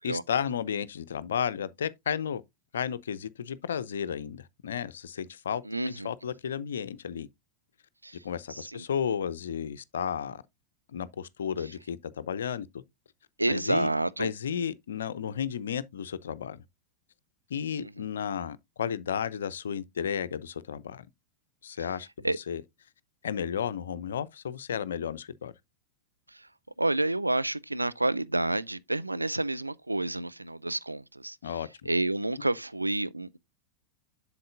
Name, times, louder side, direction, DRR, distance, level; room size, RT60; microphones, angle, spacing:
voice 1, 0.0-2.4 2.7-7.3 8.2-10.4 10.9-12.8 13.5-13.9 14.2-16.6 17.5-21.1 21.6-22.6 23.2-25.5 31.4-31.9, left 8 dB, 65° left, 0.5 m, -33 dB
voice 2, 5.7-6.1 8.0-8.2 8.5-8.8 13.4-14.3 17.8-17.9 22.2-22.4 26.3-26.4 26.8-31.4 31.9-33.4, right 2 dB, 85° right, 0.4 m, -29 dB
7.8 x 7.1 x 2.4 m
figure-of-eight pair, 90°, 0 cm